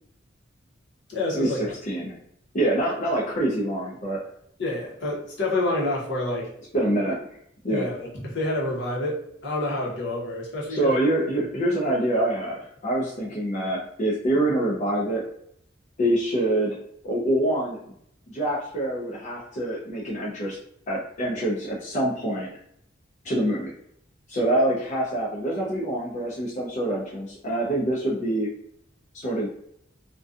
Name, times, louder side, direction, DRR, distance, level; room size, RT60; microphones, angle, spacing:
voice 1, 1.1-1.7 4.6-6.5 7.7-10.9, left 1 dB, 65° left, -3 dB, 0.8 m, -28 dB
voice 2, 1.9-2.2 2.5-4.2 6.7-7.2 7.6-7.9 10.7-15.2 16.0-16.8 17.0-17.8 18.3-20.6 20.9-22.6 23.2-23.7 24.3-28.5 29.1-29.5, right 1 dB, 40° left, -5 dB, 0.5 m, -25 dB
2.5 x 2.2 x 2.4 m, 0.71 s
head